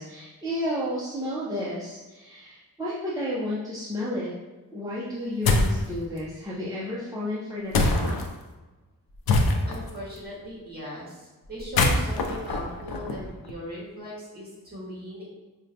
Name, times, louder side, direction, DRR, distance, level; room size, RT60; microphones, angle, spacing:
voice 1, 0.0-4.3 4.7-8.1, left 1 dB, 10° right, -8 dB, 0.4 m, -32 dB
sound 1, 5.5-5.8 7.7-8.3 9.3-9.9 11.6-13.5, left 2 dB, 85° left, 0.5 m, -23 dB
voice 2, 9.7-15.3, equal, 25° right, -6 dB, 1.3 m, -39 dB
4.9 x 2.2 x 2.7 m, 1.2 s
wide cardioid pair, 160°, 36 cm